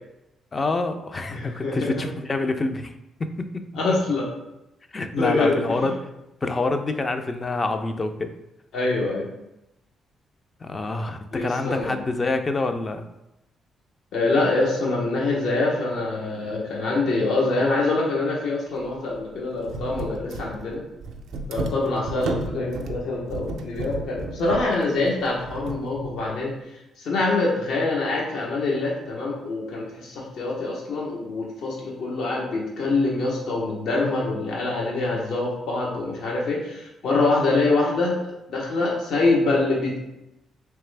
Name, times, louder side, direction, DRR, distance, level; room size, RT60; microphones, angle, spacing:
voice 1, 0.5-2.9 3.2-3.7 4.9-6.1 6.4-8.3 10.6-13.1, left 3 dB, 35° left, 7 dB, 0.4 m, -27 dB
voice 2, 1.3-2.0 3.8-4.3 5.1-5.8 8.7-9.3 11.3-12.0 14.1-20.8 21.5-26.5 27.0-38.1 38.5-40.0, left 3 dB, 75° left, -3 dB, 1.0 m, -25 dB
sound 1, 18.7-18.9 19.1-19.2 19.6-26.3, right 3 dB, 75° right, 0.4 m, -33 dB
3.4 x 3.2 x 3.3 m, 0.91 s
supercardioid pair, 65°, 0 cm